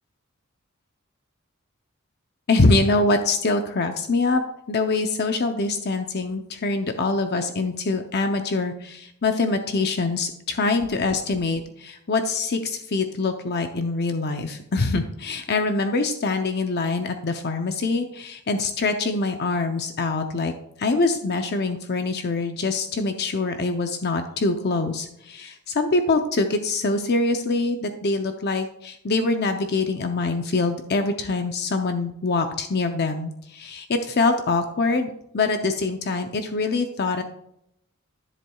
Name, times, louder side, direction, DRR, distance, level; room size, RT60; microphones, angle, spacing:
voice 1, 2.5-4.4 4.7-20.5 20.8-37.2, left 3 dB, 50° left, 6 dB, 0.7 m, -24 dB
13.5 x 7.5 x 2.4 m, 0.75 s
head